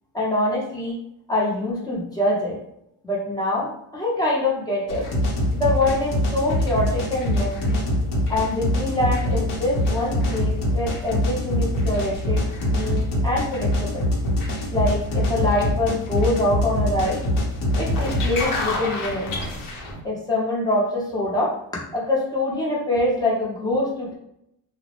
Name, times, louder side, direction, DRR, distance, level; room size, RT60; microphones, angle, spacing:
voice 1, 0.1-1.0 1.3-2.6 3.0-5.0 5.5-7.8 8.3-12.5 12.7-14.0 14.7-17.2 17.8-19.3 20.0-21.6 21.9-24.1, left 1 dB, 10° left, -5 dB, 0.7 m, -24 dB
sound 1, 4.9-20.0, left 1 dB, 70° left, 0.7 m, -24 dB
2.1 x 2.0 x 2.9 m, 0.79 s
cardioid pair, 135°, 34 cm